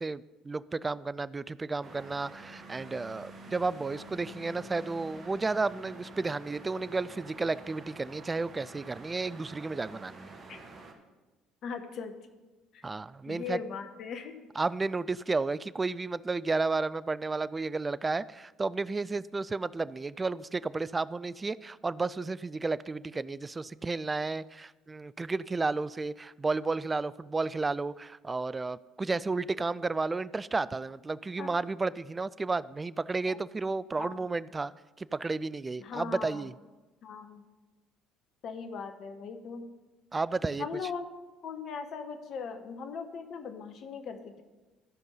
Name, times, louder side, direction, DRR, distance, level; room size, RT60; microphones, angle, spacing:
voice 1, 0.0-10.3 12.8-13.6 14.6-34.7 35.0-36.5 40.1-40.7, right 3 dB, 25° right, 17 dB, 0.3 m, -32 dB
sound 1, 1.8-10.9, right 2 dB, 40° right, 1.5 m, -48 dB
voice 2, 11.6-12.1 12.7-12.8 13.3-14.4 31.4-31.5 33.3-33.4 34.0-34.3 35.8-36.4 37.0-37.4 38.4-39.7 40.6-41.1 41.4-44.4, left 5 dB, 55° left, 8 dB, 1.1 m, -39 dB
13.5 x 5.4 x 5.4 m, 1.2 s
figure-of-eight pair, 55°, 0 cm